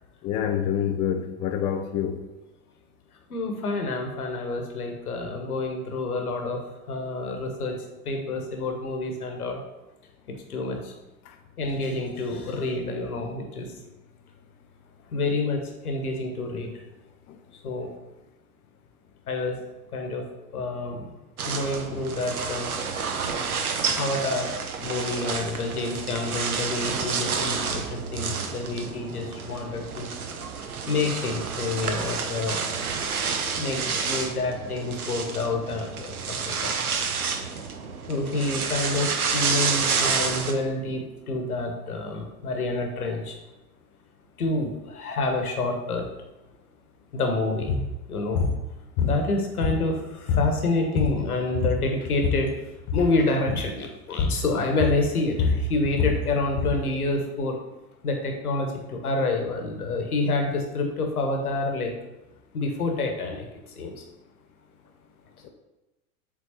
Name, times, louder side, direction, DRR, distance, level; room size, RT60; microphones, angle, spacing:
voice 1, 0.2-2.2, left 9 dB, 20° left, 5 dB, 0.3 m, -26 dB
voice 2, 3.3-6.6 6.9-7.8 8.0-9.6 10.3-10.9 11.6-13.8 15.1-16.7 17.6-17.9 19.3-19.6 19.9-20.2 20.5-21.1 21.4-22.7 23.9-24.5 24.8-30.1 30.9-32.8 33.6-37.0 38.1-43.4 44.4-46.1 47.1-47.7 48.1-48.5 49.0-52.5 52.9-57.6 58.0-61.9 62.5-63.5 63.8-64.0, left 2 dB, 75° left, 3 dB, 1.3 m, -28 dB
sound 1, 21.4-40.5, right 5 dB, 70° right, 0.9 m, -29 dB
sound 2, 47.7-47.9 48.3-48.6 49.0-50.0 50.3-50.5 50.8-51.3 51.5-52.5 52.8-53.1 53.5-53.7 54.2-54.4 54.8-56.8, left 5 dB, 45° left, 1.2 m, -25 dB
7.5 x 4.0 x 4.4 m, 1.0 s
figure-of-eight pair, 80°, 45 cm